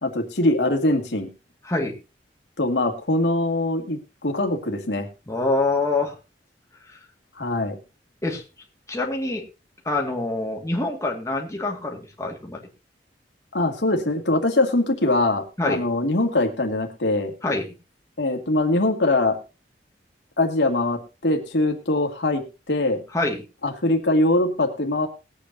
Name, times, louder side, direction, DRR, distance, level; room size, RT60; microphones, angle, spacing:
voice 1, 0.0-1.3 2.6-5.1 7.4-7.8 13.5-17.3 18.2-19.4 20.4-23.0 23.6-25.1, left 2 dB, 85° left, 3 dB, 2.2 m, -22 dB
voice 2, 1.6-2.0 5.3-6.1 6.9-7.0 8.2-8.4 8.9-9.4 9.9-12.6 15.6-15.8 17.4-17.7 23.1-23.4, left 2 dB, 20° left, 1 dB, 2.1 m, -25 dB
20.5 x 8.5 x 2.8 m, 0.29 s
head